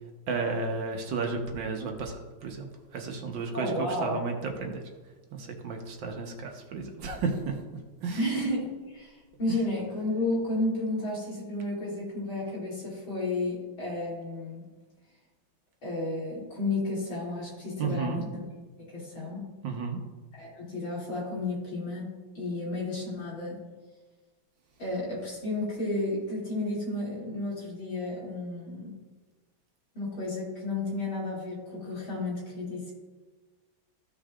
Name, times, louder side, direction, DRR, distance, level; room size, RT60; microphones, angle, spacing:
voice 1, 0.3-2.7 2.9-4.8 5.3-7.6 8.0-8.3 17.8-18.2 19.6-20.0, right 4 dB, 70° right, 3 dB, 1.6 m, -32 dB
voice 2, 3.5-4.2 8.2-14.6 15.8-18.4 18.8-19.5 20.3-22.1 22.4-23.6 24.8-29.0 30.0-32.9, left 2 dB, 80° left, -6 dB, 3.5 m, -32 dB
14.5 x 5.5 x 2.4 m, 1.3 s
omnidirectional pair, 2.2 m